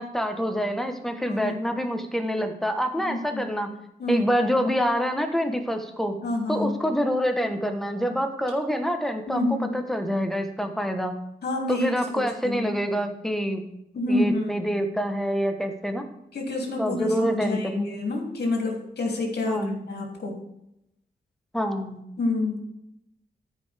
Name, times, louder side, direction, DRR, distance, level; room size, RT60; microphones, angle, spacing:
voice 1, 0.0-3.7 4.1-6.2 6.5-11.1 11.7-13.6 14.1-16.0 16.8-17.9 19.5-19.8 21.5-22.0, equal, ahead, 5 dB, 1.1 m, -26 dB
voice 2, 1.3-1.6 3.0-3.4 4.0-4.3 6.2-6.8 9.3-9.8 11.4-12.7 13.9-14.5 16.3-20.3 22.2-22.6, left 2 dB, 70° left, 0 dB, 2.7 m, -28 dB
14.5 x 5.3 x 3.4 m, 0.82 s
wide cardioid pair, 105°, 17 cm